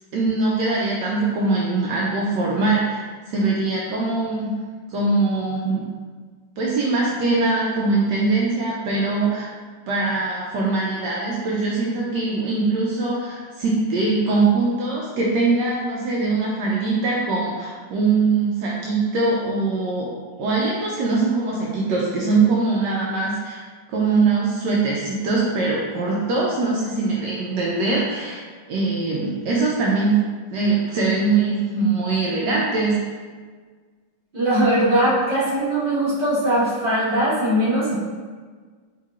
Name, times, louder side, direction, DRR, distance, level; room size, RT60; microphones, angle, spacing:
voice 1, 0.1-3.0 3.3-4.5 4.9-5.8 6.6-9.5 9.9-20.1 20.4-23.6 23.9-28.4 28.7-30.2 30.5-33.0, right 3 dB, 75° right, -4 dB, 1.2 m, -22 dB
voice 2, 34.3-38.0, right 1 dB, 30° right, -11 dB, 1.7 m, -20 dB
4.8 x 3.7 x 2.4 m, 1.5 s
omnidirectional pair, 2.0 m